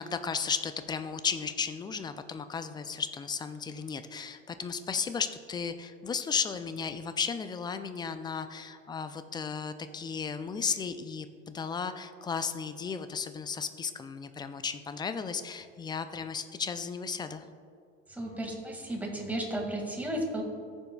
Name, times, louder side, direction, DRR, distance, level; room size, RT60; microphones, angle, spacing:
voice 1, 0.0-17.4, left 6 dB, 10° left, 10 dB, 0.3 m, -34 dB
voice 2, 18.1-20.4, right 1 dB, 5° right, 0 dB, 1.9 m, -34 dB
16.0 x 7.1 x 2.3 m, 2.4 s
hypercardioid pair, 80°, 39 cm